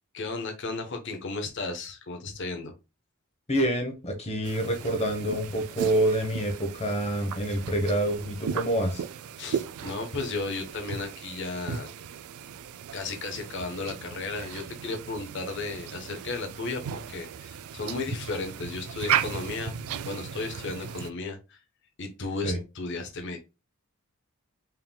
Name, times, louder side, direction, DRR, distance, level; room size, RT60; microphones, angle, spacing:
voice 1, 0.1-2.7 9.4-11.9 12.9-19.7 20.0-21.6 22.0-23.4, left 3 dB, 55° left, 4 dB, 0.9 m, -34 dB
voice 2, 3.5-9.0 22.4-22.6, right 1 dB, 30° left, 3 dB, 1.0 m, -27 dB
sound 1, 4.4-21.1, right 8 dB, 80° right, 0.4 m, -36 dB
4.4 x 3.6 x 2.2 m, 0.27 s
head